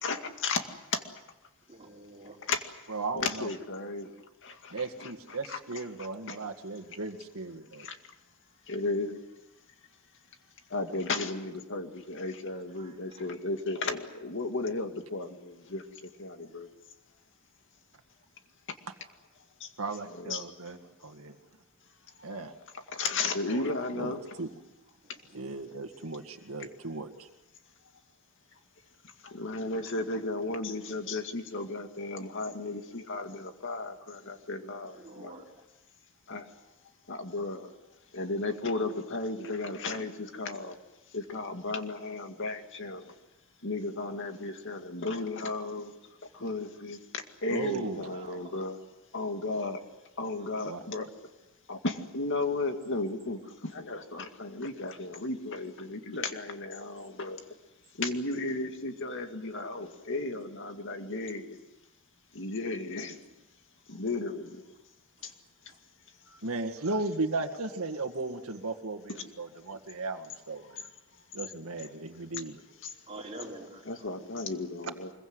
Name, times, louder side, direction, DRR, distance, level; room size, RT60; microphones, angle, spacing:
voice 1, 0.0-0.6 0.9-1.0 2.5-2.7 3.1-4.1 4.4-5.9 6.3-6.4 7.8-8.0 8.7-9.2 10.7-15.8 16.2-16.7 19.6-19.7 20.1-20.5 22.9-24.4 29.2-35.3 36.3-36.4 37.1-37.7 38.1-40.8 41.1-43.1 43.6-45.9 46.3-48.8 49.1-49.8 50.2-51.1 51.7-57.4 58.0-61.6 62.3-63.2 63.9-64.6 65.2-65.3 72.8-72.9 73.8-75.1, left 3 dB, 60° left, 6 dB, 2.1 m, -34 dB
voice 2, 1.7-2.4 12.5-12.9 25.3-25.5 34.9-35.4 48.1-48.5 73.1-73.8, right 2 dB, 25° right, -2 dB, 4.7 m, -46 dB
voice 3, 2.9-3.5 4.7-7.9 19.8-21.4 22.2-22.5 23.5-24.5 25.3-27.3 47.5-48.1 50.6-50.8 66.4-70.9 71.3-72.6, right 3 dB, 75° right, 6 dB, 2.0 m, -36 dB
25.0 x 22.5 x 8.0 m, 0.99 s
head